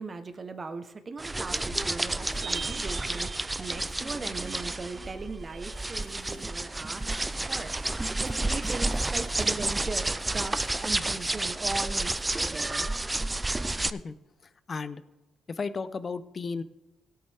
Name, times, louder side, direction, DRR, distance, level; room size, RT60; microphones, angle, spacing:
voice 1, 0.0-7.1 7.5-12.9, right 3 dB, 35° right, 9 dB, 1.0 m, -39 dB
sound 1, 1.2-13.9, right 2 dB, 15° right, 0.4 m, -30 dB
sound 2, 2.4-10.5, right 7 dB, 55° right, 0.6 m, -47 dB
sound 3, 6.0-11.2 13.1-13.2, left 3 dB, 90° left, 4.4 m, -54 dB
voice 2, 14.7-15.0 15.5-16.6, left 4 dB, 40° left, 15 dB, 0.6 m, -34 dB
17.0 x 8.5 x 3.5 m, 1.0 s
cardioid pair, 90°, 0 cm